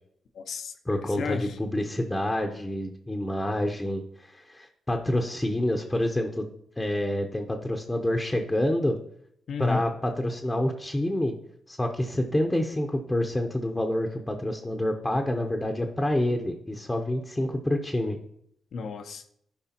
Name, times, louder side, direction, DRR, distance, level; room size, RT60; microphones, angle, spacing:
voice 1, 0.3-0.7 1.1-1.6 9.5-9.9 18.7-19.3, left 4 dB, 65° left, 0.7 m, -32 dB
voice 2, 0.9-6.4 6.8-9.0 9.6-11.3 11.7-18.2, left 1 dB, 15° left, 0.9 m, -27 dB
12.5 x 4.8 x 2.9 m
supercardioid pair, 60°, 0 cm